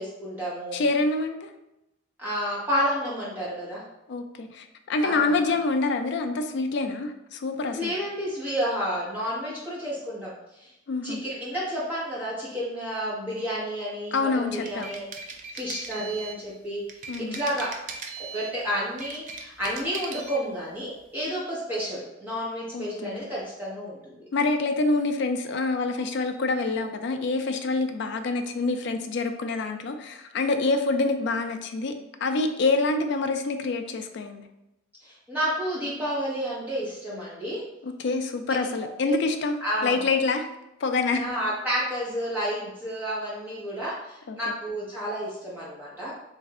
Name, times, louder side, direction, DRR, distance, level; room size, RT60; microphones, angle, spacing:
voice 1, 0.0-0.8 2.2-3.8 5.0-5.3 7.7-10.7 11.0-16.8 17.2-17.7 18.2-24.2 35.0-37.6 38.5-38.7 39.0-39.2 39.6-40.0 41.1-46.1, equal, 10° right, -8 dB, 1.2 m, -31 dB
voice 2, 0.7-1.4 4.1-7.9 10.9-11.2 14.1-14.9 17.1-17.4 22.7-23.3 24.3-31.9 32.2-34.5 37.8-39.5 39.8-40.5 40.8-41.3 44.3-44.4, left 3 dB, 55° left, 7 dB, 0.3 m, -26 dB
sound 1, 14.5-16.4 16.9-18.6 18.9-20.4, right 4 dB, 40° right, 0.3 m, -39 dB
3.5 x 3.1 x 2.4 m, 0.90 s
head